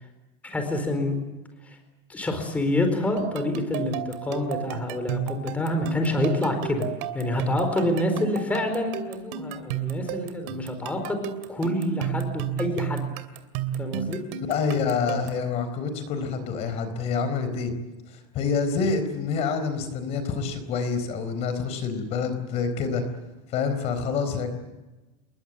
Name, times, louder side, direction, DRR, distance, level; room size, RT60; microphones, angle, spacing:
voice 1, 0.4-1.2 1.6-1.8 2.1-6.9 7.1-11.2 11.5-13.0 13.8-14.2, left 1 dB, 10° left, 6 dB, 4.4 m, -27 dB
sound 1, 3.2-15.5, right 9 dB, 55° right, 2.8 m, -33 dB
voice 2, 14.4-17.7 18.1-23.0 23.5-24.5, left 5 dB, 35° left, 10 dB, 4.2 m, -27 dB
28.5 x 22.5 x 7.6 m, 1.1 s
supercardioid pair, 170°, 18 cm